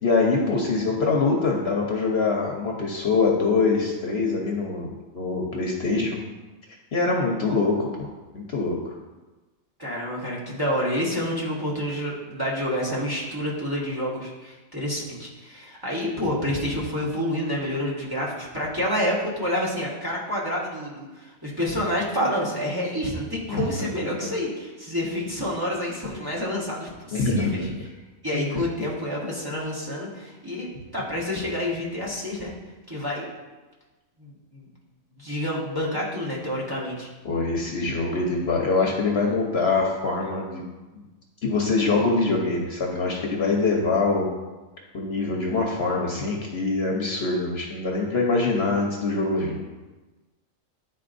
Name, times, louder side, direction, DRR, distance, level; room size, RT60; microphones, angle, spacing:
voice 1, 0.0-4.9 5.1-6.2 6.9-8.1 8.3-8.9 23.5-24.1 27.1-27.7 28.3-28.5 37.2-40.6 40.9-41.0 41.4-44.3 44.9-49.6, left 3 dB, 55° left, -1 dB, 1.0 m, -24 dB
voice 2, 9.8-27.7 28.2-30.7 30.9-32.5 32.9-33.3 34.2-34.6 35.2-37.1, equal, 20° right, -5 dB, 1.2 m, -28 dB
10.5 x 4.2 x 2.6 m, 1.2 s
omnidirectional pair, 1.4 m